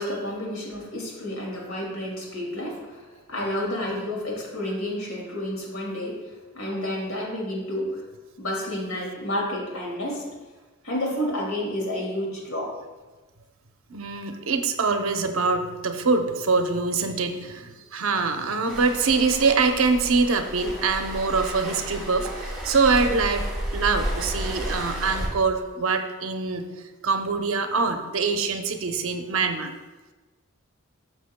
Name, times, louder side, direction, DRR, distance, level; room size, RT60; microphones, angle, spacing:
voice 1, 0.0-8.0 8.4-10.3 10.8-12.8, left 1 dB, 85° left, -2 dB, 2.3 m, -30 dB
voice 2, 13.9-23.4 23.7-29.7, right 4 dB, 75° right, 6 dB, 0.7 m, -24 dB
Waves surf, 18.7-25.2, right 1 dB, 5° right, 2.2 m, -32 dB
11.5 x 6.3 x 2.2 m, 1.2 s
head